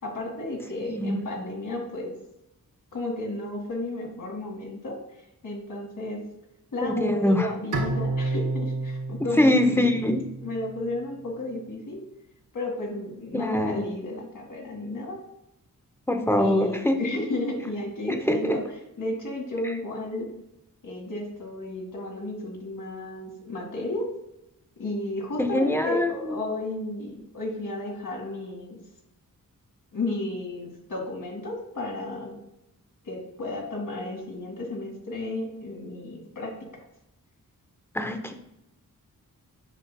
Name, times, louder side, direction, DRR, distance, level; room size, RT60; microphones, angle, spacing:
voice 1, 0.0-2.1 2.9-5.0 5.4-6.2 6.7-9.9 10.4-12.0 12.5-15.2 16.4-18.6 19.0-20.3 20.8-24.1 24.8-28.8 29.9-32.3 33.0-36.5, left 2 dB, 65° left, -1 dB, 2.0 m, -33 dB
voice 2, 0.8-1.2 6.8-7.5 9.4-10.2 13.3-13.9 16.1-17.0 18.1-18.6 25.4-26.1 37.9-38.3, left 1 dB, 5° left, 5 dB, 0.6 m, -23 dB
Bowed string instrument, 7.7-11.0, right 2 dB, 60° right, 1.7 m, -30 dB
8.0 x 6.1 x 2.2 m, 0.86 s
wide cardioid pair, 140°, 34 cm